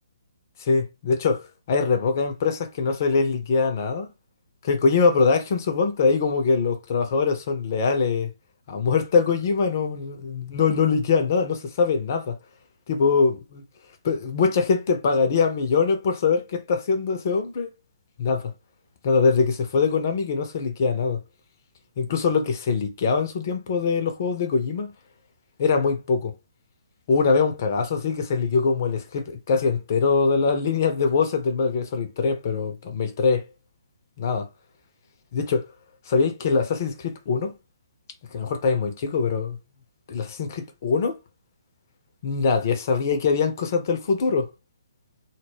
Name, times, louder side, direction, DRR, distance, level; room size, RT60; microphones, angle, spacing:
voice 1, 0.6-4.1 4.6-8.3 8.7-12.4 12.9-13.6 14.0-17.7 18.2-18.5 19.0-21.2 22.0-24.9 25.6-26.3 27.1-33.4 34.2-34.5 35.3-35.7 36.1-37.5 38.3-39.6 40.1-41.2 42.2-44.5, left 5 dB, 45° left, 0.5 m, -23 dB
2.2 x 2.1 x 3.3 m
figure-of-eight pair, 135°, 2 cm